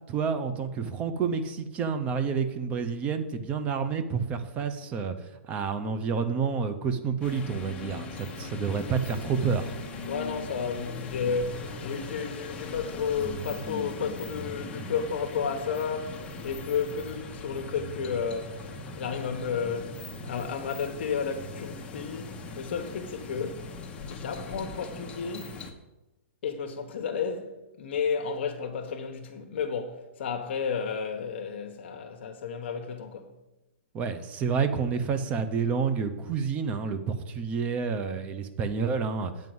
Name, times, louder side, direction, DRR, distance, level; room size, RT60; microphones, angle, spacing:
voice 1, 0.1-9.7 33.9-39.3, right 6 dB, 20° right, 0.7 m, -29 dB
sound 1, 7.2-25.7, left 3 dB, 15° left, 1.0 m, -40 dB
voice 2, 10.1-18.7 19.0-23.6 24.1-25.6 26.4-33.3, left 6 dB, 55° left, 1.0 m, -32 dB
8.8 x 5.5 x 7.8 m
hypercardioid pair, 160°, 7 cm